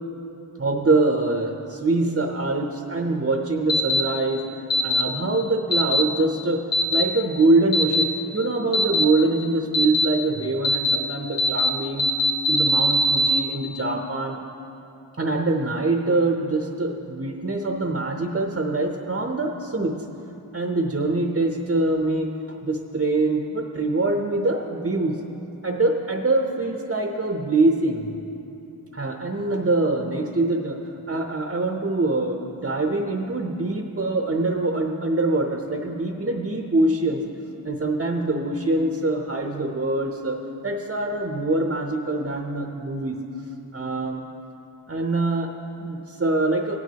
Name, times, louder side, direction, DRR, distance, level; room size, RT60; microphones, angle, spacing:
voice 1, 0.6-4.6 4.8-12.2 12.5-14.4 15.2-20.0 20.5-25.2 25.6-28.1 28.9-37.3 37.6-43.2 43.7-44.2 44.9-46.8, right 2 dB, 35° right, 2 dB, 0.7 m, -24 dB
sound 1, 3.7-4.0 4.7-5.0 5.7-6.0 6.7-7.0 7.7-8.0 8.7-9.0 9.7-10.1 10.6-11.0 11.4-11.7 12.0-13.4, left 1 dB, 65° left, 0.9 m, -20 dB
18.0 x 9.2 x 2.9 m, 3.0 s
wide cardioid pair, 50°, 37 cm